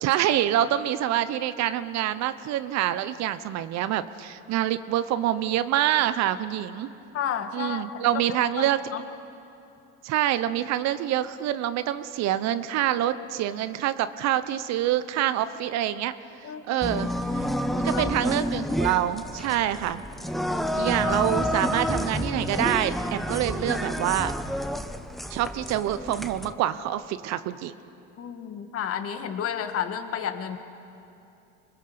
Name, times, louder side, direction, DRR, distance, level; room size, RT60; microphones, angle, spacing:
voice 1, 0.0-6.9 7.5-8.8 10.0-16.1 16.7-17.5 17.8-20.0 20.7-24.4 25.3-27.7, right 12 dB, 60° right, 13 dB, 0.9 m, -26 dB
voice 2, 7.1-8.1 8.6-9.1 16.4-16.6 17.7-18.1 18.5-18.6 28.2-30.6, left 8 dB, 50° left, 8 dB, 1.9 m, -32 dB
sound 1, 16.8-26.5, equal, ahead, 1.0 m, -29 dB
25.5 x 20.0 x 6.8 m, 2.7 s
supercardioid pair, 80°, 30 cm